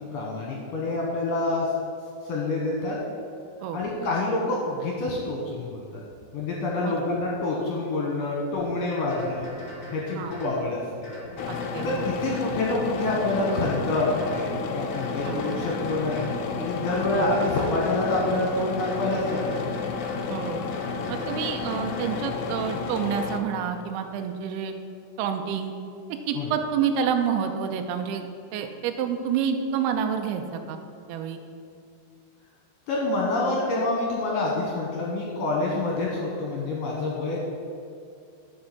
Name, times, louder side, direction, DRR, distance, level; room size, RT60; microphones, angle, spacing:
voice 1, 0.1-1.7 2.2-3.0 3.7-6.0 6.3-9.5 9.9-11.1 11.8-19.7 26.4-26.5 32.9-37.4, left 2 dB, 65° left, -2 dB, 2.3 m, -27 dB
sound 1, 8.5-8.7 9.1-10.6 11.0-12.6 13.0-14.5 14.9-16.4 16.8-18.4 18.8-20.3 20.7-22.2, left 1 dB, 25° left, 2.3 m, -41 dB
sound 2, 11.4-23.4, left 5 dB, 90° left, 2.0 m, -32 dB
voice 2, 11.5-12.0 15.2-15.4 17.1-17.3 20.3-20.7 21.1-24.7 25.2-25.7 26.1-28.2 28.5-30.8 31.1-31.4, right 7 dB, 80° right, 5 dB, 2.4 m, -28 dB
11.0 x 5.3 x 5.9 m, 2.4 s
omnidirectional pair, 5.0 m